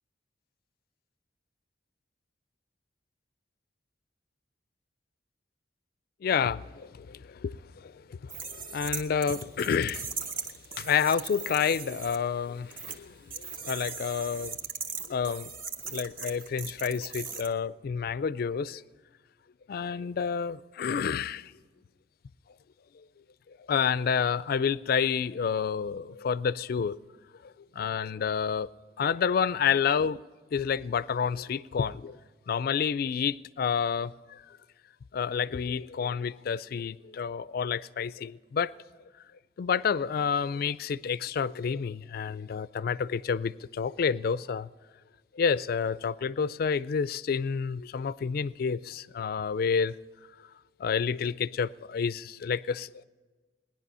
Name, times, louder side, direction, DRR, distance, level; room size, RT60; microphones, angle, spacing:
voice 1, 6.2-10.1 10.7-14.6 15.1-15.5 15.9-18.8 19.7-21.5 23.7-27.0 27.4-28.7 29.0-30.2 30.5-32.2 32.5-34.4 35.1-38.7 39.6-44.7 45.3-50.0 50.8-53.0, left 6 dB, 55° left, 0.3 m, -29 dB
sound 1, 8.3-12.2 12.7-13.0 13.3-17.5, right 5 dB, 50° right, 1.2 m, -38 dB
19.5 x 10.5 x 5.5 m
head